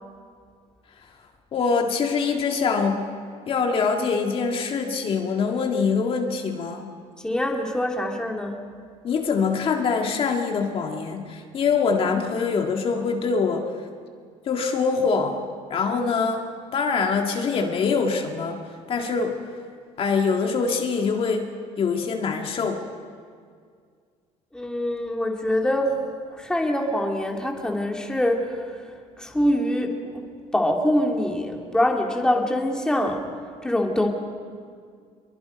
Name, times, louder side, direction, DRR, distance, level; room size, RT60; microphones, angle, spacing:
voice 1, 1.5-3.1 3.5-6.9 9.0-13.7 14.5-16.5 16.7-18.6 18.9-19.4 20.0-21.5 21.8-22.8, left 5 dB, 45° left, 2 dB, 1.9 m, -24 dB
voice 2, 7.2-8.6 24.5-28.7 29.2-30.2 30.5-33.2 33.6-34.1, left 1 dB, 5° left, 1 dB, 2.5 m, -24 dB
25.5 x 22.5 x 5.2 m, 2.1 s
cardioid pair, 125°, 13 cm